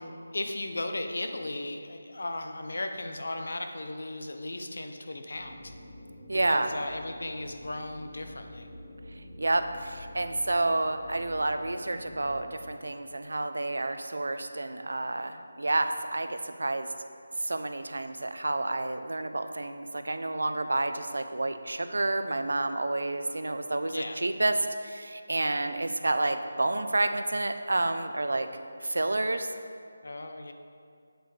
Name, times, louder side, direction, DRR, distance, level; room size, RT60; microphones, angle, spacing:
voice 1, 0.0-5.7 6.3-8.7 23.9-24.2 30.0-30.5, left 2 dB, 70° left, 6 dB, 0.7 m, -36 dB
sound 1, 5.3-12.7, left 1 dB, 5° right, 1.0 m, -47 dB
voice 2, 6.3-6.7 9.4-16.9 17.4-28.5 28.8-29.5, right 2 dB, 85° right, 8 dB, 0.5 m, -29 dB
7.9 x 7.8 x 3.3 m, 2.3 s
figure-of-eight pair, 175°, 0 cm